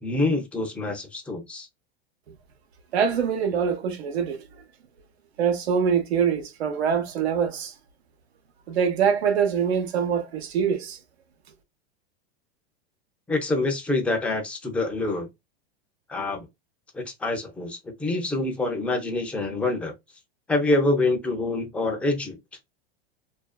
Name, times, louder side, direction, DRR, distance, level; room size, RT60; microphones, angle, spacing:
voice 1, 0.0-1.7 13.3-15.3 16.1-16.5 16.9-19.9 20.5-22.4, left 2 dB, 5° left, 0.4 m, -26 dB
voice 2, 2.9-4.4 5.4-7.7 8.7-11.0, right 7 dB, 85° right, 0.8 m, -24 dB
2.5 x 2.2 x 2.3 m
hypercardioid pair, 115°, 31 cm